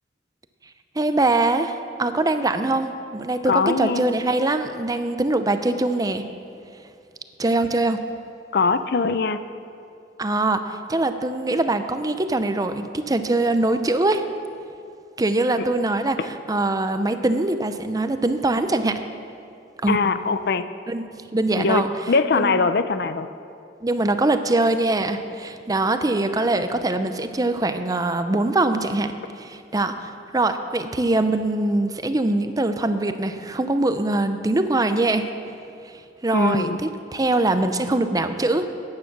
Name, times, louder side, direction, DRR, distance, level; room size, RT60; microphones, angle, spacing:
voice 1, 1.0-6.2 7.4-8.0 10.2-10.6 10.9-14.2 15.2-19.0 19.8-20.0 20.9-21.9 22.3-22.7 23.8-29.1 29.4-35.3 35.8-35.9 36.2-38.7, right 2 dB, 20° right, 9 dB, 0.6 m, -23 dB
voice 2, 3.5-4.1 8.5-9.4 16.2-16.3 19.9-20.7 21.6-23.3 36.3-36.8, left 4 dB, 60° left, 11 dB, 0.5 m, -22 dB
14.0 x 9.6 x 6.0 m, 2.4 s
head